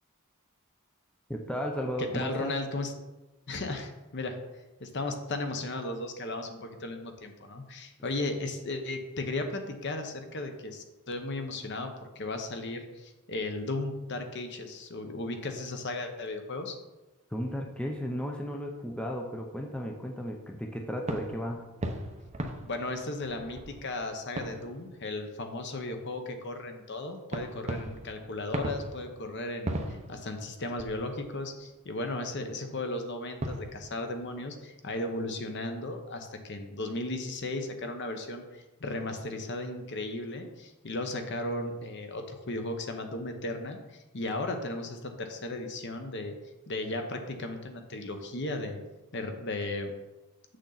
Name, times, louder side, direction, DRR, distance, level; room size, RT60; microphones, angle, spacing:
voice 1, 1.3-2.5 17.3-21.6, equal, 5° left, 1 dB, 0.6 m, -34 dB
voice 2, 2.0-2.9 3.5-4.4 4.8-16.8 22.7-46.3 46.7-48.8 49.1-49.9, left 2 dB, 55° left, 6 dB, 0.9 m, -35 dB
sound 1, 21.1-25.6 25.9-26.1 27.3-31.9 33.1-33.2 33.4-34.4, right 1 dB, 30° right, 0.7 m, -39 dB
7.1 x 6.5 x 4.0 m, 1.1 s
head